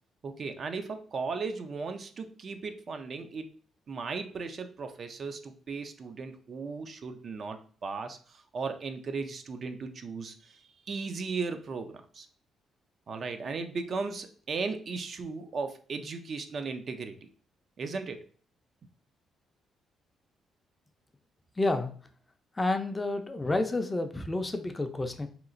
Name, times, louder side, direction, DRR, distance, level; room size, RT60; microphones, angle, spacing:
voice 1, 0.2-3.5 3.9-12.3 13.1-17.3 17.8-18.2, right 4 dB, 50° right, 7 dB, 0.3 m, -36 dB
voice 2, 21.6-21.9 22.5-25.3, left 2 dB, 20° left, 6 dB, 0.4 m, -30 dB
2.9 x 2.4 x 2.5 m, 0.44 s
cardioid pair, 90°, 0 cm